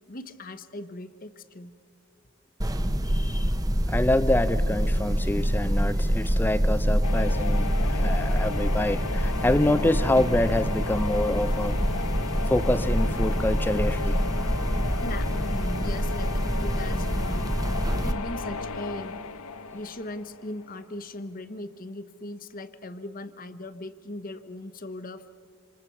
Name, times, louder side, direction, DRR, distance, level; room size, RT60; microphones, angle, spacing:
voice 1, 0.1-1.7 15.0-16.3 16.6-17.6 18.0-19.2 19.7-25.2, left 1 dB, 40° left, 11 dB, 1.0 m, -38 dB
sound 1, 2.6-18.1, equal, 15° right, 0.9 m, -26 dB
voice 2, 3.0-3.6 3.9-11.8 12.5-14.2, left 1 dB, 10° left, 14 dB, 0.6 m, -26 dB
sound 2, 7.0-20.9, left 4 dB, 80° left, 1.0 m, -35 dB
27.5 x 26.5 x 6.0 m, 2.5 s
head